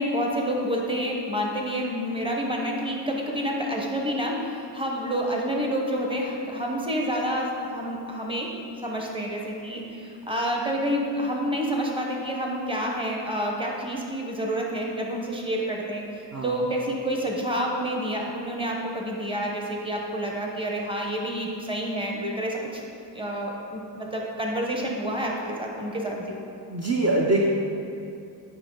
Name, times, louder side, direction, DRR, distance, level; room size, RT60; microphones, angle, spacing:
voice 1, 0.0-8.5 8.8-16.0 16.4-22.8 23.1-26.4, equal, 10° right, -1 dB, 1.1 m, -28 dB
voice 2, 26.7-27.5, right 2 dB, 35° right, -3 dB, 0.8 m, -23 dB
8.7 x 5.4 x 3.9 m, 2.5 s
wide cardioid pair, 95°, 44 cm